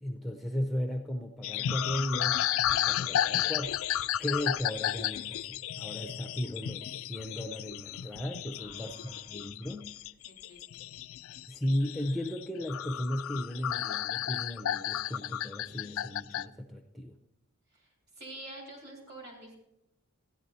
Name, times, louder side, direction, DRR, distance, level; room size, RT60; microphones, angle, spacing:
voice 1, 0.0-2.4 2.7-3.8 4.2-9.9 11.5-17.2, left 1 dB, ahead, 2 dB, 0.5 m, -35 dB
sound 1, 1.4-16.4, left 11 dB, 65° left, 0.3 m, -33 dB
voice 2, 8.6-9.3 10.3-10.8 17.7-17.9 18.2-19.6, right 1 dB, 45° right, -1 dB, 3.5 m, -48 dB
14.0 x 10.0 x 4.1 m, 0.84 s
head